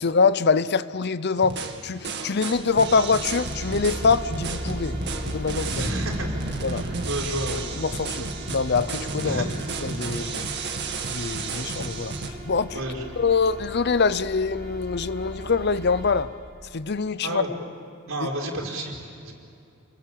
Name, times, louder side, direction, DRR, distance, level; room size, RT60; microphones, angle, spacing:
voice 1, 0.0-5.0 5.3-5.9 6.6-6.8 7.8-9.4 9.8-10.5 11.1-12.1 12.4-12.8 13.2-16.3 16.7-17.4 18.2-18.3, left 4 dB, 50° left, 15 dB, 0.7 m, -24 dB
sound 1, 1.4-12.3, right 4 dB, 55° right, 2.3 m, -33 dB
sound 2, 2.5-16.2, equal, 30° right, 3.3 m, -37 dB
voice 2, 5.7-6.3 6.7-7.6 9.2-9.5 12.7-13.0 17.2-17.5 18.1-19.0 19.2-19.3, right 1 dB, 75° right, -1 dB, 5.0 m, -30 dB
29.0 x 21.5 x 8.8 m, 2.5 s
head